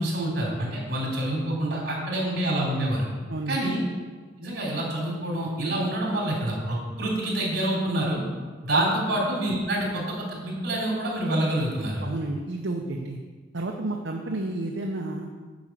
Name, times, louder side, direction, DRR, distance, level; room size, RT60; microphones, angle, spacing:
voice 1, 0.0-3.1 3.5-3.8 4.4-8.2 8.6-12.0, right 1 dB, 55° right, -3 dB, 3.4 m, -27 dB
voice 2, 12.0-13.2 13.5-15.3, right 2 dB, 75° right, 1 dB, 0.8 m, -31 dB
8.9 x 5.1 x 7.5 m, 1.4 s
head